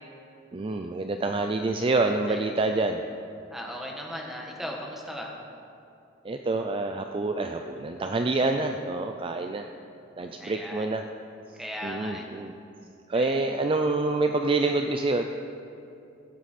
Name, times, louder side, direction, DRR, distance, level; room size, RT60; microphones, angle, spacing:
voice 1, 0.5-3.0 6.2-9.7 10.2-11.0 11.8-12.5 13.1-15.3, right 2 dB, 30° right, 5 dB, 0.4 m, -27 dB
voice 2, 3.5-5.3 10.4-10.9 11.6-12.3 13.1-13.4, equal, ahead, -1 dB, 1.4 m, -37 dB
17.0 x 8.0 x 4.3 m, 2.6 s
head